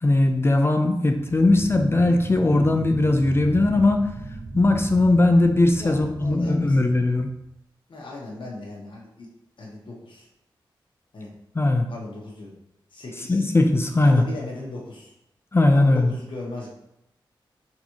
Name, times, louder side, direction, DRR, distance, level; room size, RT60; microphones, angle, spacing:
voice 1, 0.0-4.1 4.5-7.3 11.6-11.9 13.3-14.2 15.5-16.1, left 2 dB, 30° left, 5 dB, 0.4 m, -19 dB
sound 1, 1.1-7.6, right 3 dB, 30° right, 0.4 m, -37 dB
voice 2, 5.8-7.0 7.9-9.3 9.6-10.3 11.1-11.3 11.9-12.5 12.9-13.5 14.0-15.1 15.7-16.7, left 2 dB, 65° left, -4 dB, 1.1 m, -37 dB
3.9 x 3.6 x 3.1 m, 0.81 s
cardioid pair, 60°, 9 cm